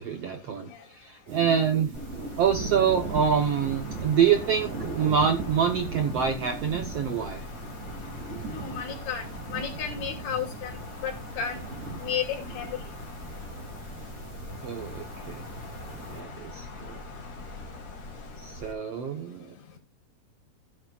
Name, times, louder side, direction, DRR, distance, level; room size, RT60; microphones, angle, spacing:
voice 1, 0.0-1.9 2.4-7.5 14.6-15.4 16.1-17.0 18.4-19.5, right 7 dB, 70° right, 5 dB, 1.5 m, -26 dB
sound 1, 1.3-16.2, right 4 dB, 50° right, 3.2 m, -39 dB
Wind, 1.9-18.7, left 3 dB, 35° left, 2.4 m, -42 dB
voice 2, 8.5-10.8 11.0-11.6 12.0-12.8, left 7 dB, 85° left, 1 dB, 4.9 m, -33 dB
16.5 x 8.9 x 2.4 m, 0.25 s
omnidirectional pair, 4.3 m